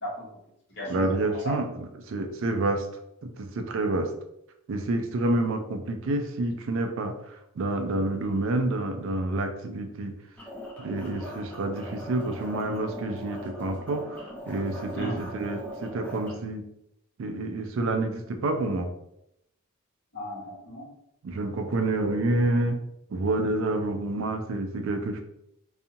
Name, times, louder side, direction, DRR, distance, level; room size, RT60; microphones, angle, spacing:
voice 1, 0.0-0.4 0.7-1.5 14.9-15.1 20.1-20.9, equal, 50° left, -5 dB, 1.1 m, -36 dB
voice 2, 0.9-2.9 3.2-4.1 4.7-10.1 10.8-16.6 17.2-18.9 21.2-22.8 23.1-25.2, right 2 dB, 65° right, 6 dB, 0.4 m, -28 dB
sound 1, 10.4-16.3, equal, 5° left, 0.4 m, -40 dB
2.6 x 2.3 x 2.7 m, 0.79 s
head